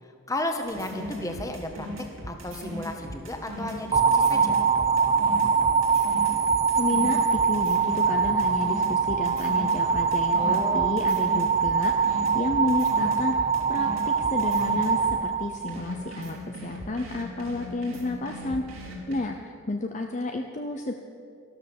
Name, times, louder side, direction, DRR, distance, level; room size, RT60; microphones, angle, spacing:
voice 1, 0.3-1.9 2.3-4.6 10.3-11.0, left 1 dB, 15° left, 4 dB, 1.3 m, -33 dB
sound 1, 0.6-15.2 15.7-19.2, equal, 70° right, 3.1 m, -38 dB
sound 2, 3.9-16.1, right 6 dB, 25° right, 0.7 m, -23 dB
voice 2, 6.8-20.9, left 2 dB, 35° left, 4 dB, 0.7 m, -31 dB
13.5 x 13.0 x 7.1 m, 2.3 s
head